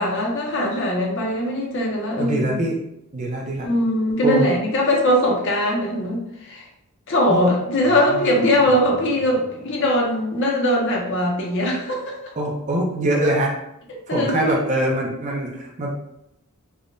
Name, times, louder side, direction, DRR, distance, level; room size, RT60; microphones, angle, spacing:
voice 1, 0.0-2.6 3.6-6.6 7.1-12.3 13.9-14.6, left 1 dB, 60° left, -2 dB, 0.7 m, -21 dB
voice 2, 2.2-2.8 3.1-3.7 4.2-4.5 7.3-7.5 12.4-13.5 14.1-15.9, right 1 dB, 35° right, -2 dB, 0.5 m, -23 dB
sound 1, 7.7-10.3, right 2 dB, 60° right, 1.0 m, -38 dB
3.5 x 2.1 x 2.5 m, 0.81 s
head